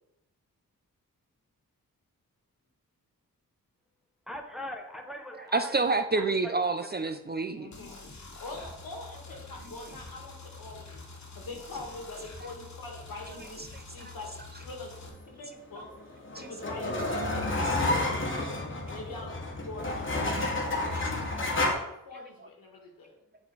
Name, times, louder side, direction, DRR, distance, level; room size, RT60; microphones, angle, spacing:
voice 1, 4.3-5.8 6.1-6.5 7.1-7.2, equal, ahead, 3 dB, 1.1 m, -40 dB
voice 2, 5.3-7.7 13.3-13.4 13.7-14.1 16.3-16.5 20.9-21.0, right 3 dB, 30° right, 8 dB, 0.5 m, -29 dB
voice 3, 7.5-8.0 8.4-11.0 11.3-13.6 13.9-14.3 14.6-15.9 16.4-18.5 18.9-23.2, left 2 dB, 70° left, 1 dB, 1.7 m, -43 dB
sound 1, 7.7-15.1, left 3 dB, 50° left, 1.5 m, -46 dB
sound 2, 15.8-21.7, left 2 dB, 35° left, 1.3 m, -30 dB
7.5 x 3.2 x 4.6 m, 0.84 s
supercardioid pair, 40°, 35 cm